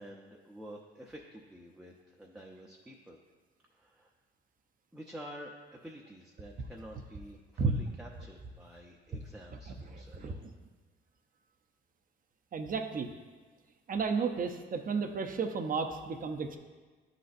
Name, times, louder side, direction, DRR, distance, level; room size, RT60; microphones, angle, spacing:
voice 1, 0.0-3.2 3.7-4.1 4.9-10.5 11.3-11.4, equal, 5° right, -2 dB, 0.6 m, -49 dB
voice 2, 9.9-10.3 12.5-13.1 13.9-16.6, right 5 dB, 45° right, 5 dB, 0.6 m, -32 dB
11.0 x 4.1 x 2.5 m, 1.4 s
cardioid pair, 90°, 20 cm